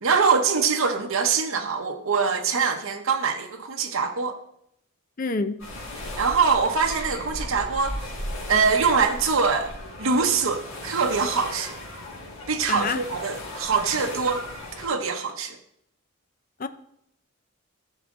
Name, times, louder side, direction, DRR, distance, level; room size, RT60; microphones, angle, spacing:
voice 1, 0.0-4.4 6.0-8.1 8.5-9.7 10.0-11.8 12.5-14.5 14.8-15.6, right 5 dB, 70° right, 4 dB, 0.8 m, -23 dB
voice 2, 5.2-5.6 12.7-13.0 16.6-16.7, left 3 dB, 40° left, 11 dB, 0.5 m, -27 dB
sound 1, 5.6-14.9, left 1 dB, 85° left, 4.2 m, -36 dB
13.0 x 6.4 x 3.6 m, 0.75 s
head